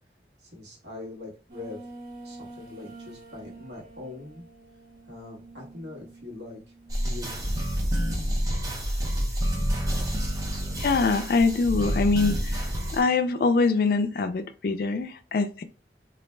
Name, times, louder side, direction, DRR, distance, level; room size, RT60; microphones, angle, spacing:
voice 1, 0.5-1.9 2.2-4.4 5.1-6.6 7.0-7.5, left 2 dB, 80° right, 1.2 m, -42 dB
sound 1, 1.5-7.6, right 2 dB, 50° right, 1.1 m, -47 dB
sound 2, 6.9-13.0, equal, 20° right, 0.5 m, -28 dB
voice 2, 10.8-12.4 12.9-15.6, left 4 dB, 55° left, 0.3 m, -23 dB
2.5 x 2.1 x 3.1 m
head